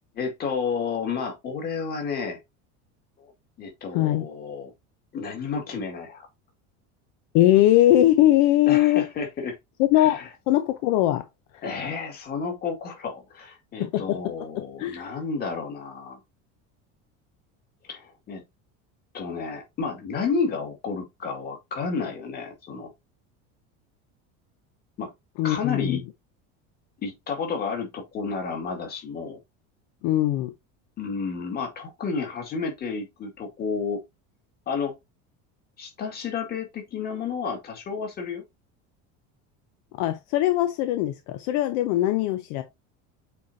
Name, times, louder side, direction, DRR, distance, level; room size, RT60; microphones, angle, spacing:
voice 1, 0.1-2.4 3.2-3.3 3.6-4.7 5.1-6.3 8.7-9.6 10.0-10.3 11.6-16.2 17.9-18.4 19.1-22.9 25.0-25.1 25.4-26.0 27.0-29.4 31.0-34.0 34.7-34.9 35.8-38.4, left 5 dB, 30° left, 2.1 m, -31 dB
voice 2, 3.9-4.3 7.3-9.0 9.8-10.2 10.5-11.2 11.5-11.6 13.8-14.2 14.6-15.1 25.4-26.0 30.0-30.5 40.0-42.6, left 14 dB, 60° left, 0.8 m, -21 dB
8.1 x 4.2 x 2.7 m
cardioid pair, 170°, 34 cm